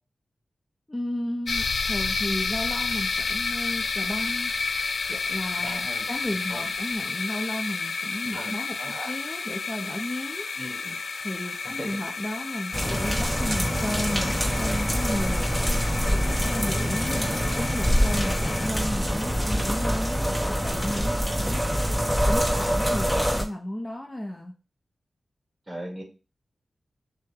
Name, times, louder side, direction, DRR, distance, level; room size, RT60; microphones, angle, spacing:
voice 1, 0.9-4.5 5.1-8.8 9.1-10.5 11.2-15.6 16.1-21.6 22.3-24.5, left 1 dB, 20° left, 2 dB, 0.7 m, -33 dB
sound 1, 1.5-18.7, left 4 dB, 75° left, 0.4 m, -31 dB
voice 2, 5.6-6.1 6.5-6.7 8.3-9.2 10.6-10.9 11.6-12.0 17.2-17.5 25.7-26.0, equal, 20° right, -1 dB, 2.1 m, -38 dB
sound 2, 12.7-23.4, equal, 5° left, 1.1 m, -25 dB
6.4 x 2.3 x 3.5 m, 0.32 s
wide cardioid pair, 95°, 0 cm